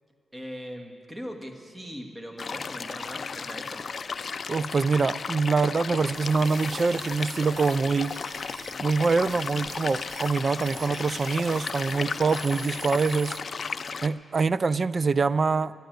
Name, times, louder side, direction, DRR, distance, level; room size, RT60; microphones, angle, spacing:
voice 1, 0.3-3.9, equal, 15° right, 3 dB, 1.6 m, -40 dB
sound 1, 2.4-14.1, left 5 dB, 50° left, 0.4 m, -34 dB
voice 2, 4.5-8.1 8.8-13.4 14.0-15.7, right 4 dB, 45° right, 17 dB, 0.3 m, -25 dB
sound 2, 6.1-13.4, right 5 dB, 75° right, 0.7 m, -45 dB
12.5 x 11.5 x 9.2 m, 2.4 s
cardioid pair, 90°, 0 cm